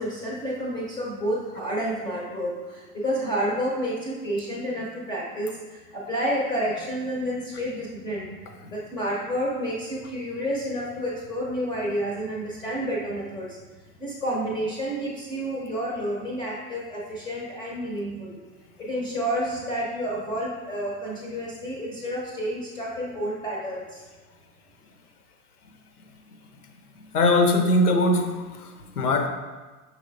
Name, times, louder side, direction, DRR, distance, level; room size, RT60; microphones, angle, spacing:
voice 1, 0.0-8.3 8.7-13.6 14.0-18.4 18.8-24.1, equal, 10° left, -4 dB, 0.4 m, -30 dB
voice 2, 27.0-29.3, left 2 dB, 80° left, 5 dB, 0.6 m, -22 dB
5.4 x 3.3 x 2.4 m, 1.3 s
figure-of-eight pair, 85°, 45 cm